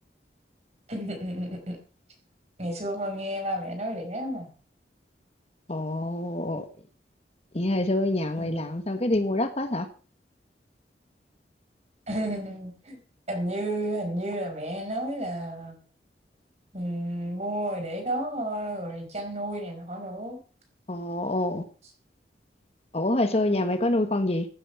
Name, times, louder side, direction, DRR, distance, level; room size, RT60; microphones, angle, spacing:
voice 1, 0.9-1.8 2.6-4.5 8.4-8.7 12.1-13.0 13.3-15.7 16.7-20.4, right 1 dB, 40° right, 4.8 m, -32 dB
voice 2, 5.7-6.7 7.5-9.9 20.9-21.6 22.9-24.5, left 1 dB, 35° left, 1.2 m, -26 dB
16.0 x 9.2 x 5.9 m
head